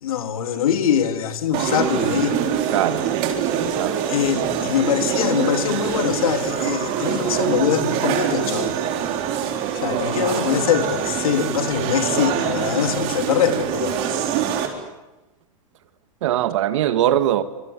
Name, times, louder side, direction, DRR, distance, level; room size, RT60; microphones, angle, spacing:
voice 1, 0.0-2.4 4.1-8.8 9.8-14.0, left 9 dB, 85° left, 3.4 m, -23 dB
sound 1, 1.5-14.7, right 8 dB, 40° right, 4.3 m, -24 dB
voice 2, 2.7-3.3 3.6-4.0 16.2-17.4, right 12 dB, 60° right, 1.9 m, -21 dB
26.5 x 26.5 x 8.5 m
supercardioid pair, 160°, 18 cm